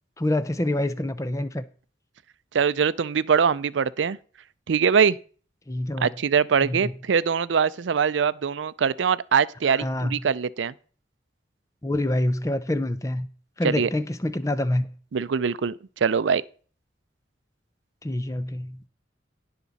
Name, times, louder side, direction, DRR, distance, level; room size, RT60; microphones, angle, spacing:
voice 1, 0.2-1.6 5.7-6.1 6.6-6.9 9.6-10.2 11.8-13.3 13.6-14.9 18.0-18.8, left 1 dB, 15° left, 0.6 m, -26 dB
voice 2, 2.5-4.2 4.7-5.2 6.0-10.7 13.6-13.9 15.1-15.7 16.0-16.4, right 6 dB, 85° right, 0.5 m, -22 dB
17.0 x 6.0 x 4.1 m
head